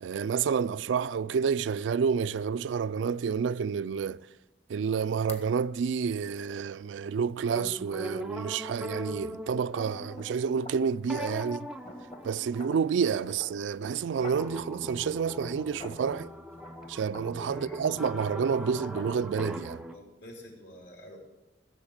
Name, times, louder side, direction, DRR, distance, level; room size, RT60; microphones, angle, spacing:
voice 1, 0.0-4.3 4.7-11.7 12.2-16.3 16.9-19.8, right 6 dB, 85° right, 0.3 m, -29 dB
sound 1, 2.1-2.2 2.7-2.8 5.3-5.5 10.0-16.2 16.5-19.6, left 2 dB, 35° left, 1.4 m, -48 dB
sound 2, 7.5-13.5 14.3-20.0, equal, 5° right, 0.5 m, -41 dB
voice 2, 17.5-17.8 19.9-21.2, left 1 dB, 70° left, 3.2 m, -49 dB
15.5 x 7.1 x 7.2 m
head